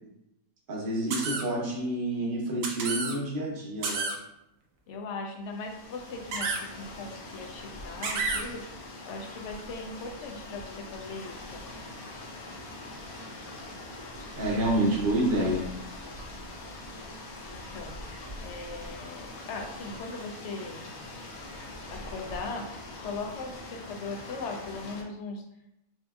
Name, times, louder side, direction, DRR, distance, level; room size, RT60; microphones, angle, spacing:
voice 1, 0.7-4.1 14.4-15.7, right 1 dB, 40° right, -3 dB, 0.9 m, -28 dB
sound 1, 1.1-1.4 2.6-3.2 3.8-4.2 6.3-6.6 8.0-8.4, right 4 dB, 70° right, 1.0 m, -30 dB
voice 2, 4.9-11.6 17.5-18.0 18.4-20.8 21.9-22.7 23.0-25.4, left 3 dB, 65° left, 3 dB, 0.8 m, -39 dB
sound 2, 5.4-25.0, left 1 dB, 90° left, 1.2 m, -43 dB
4.1 x 2.6 x 2.3 m, 0.84 s
omnidirectional pair, 1.5 m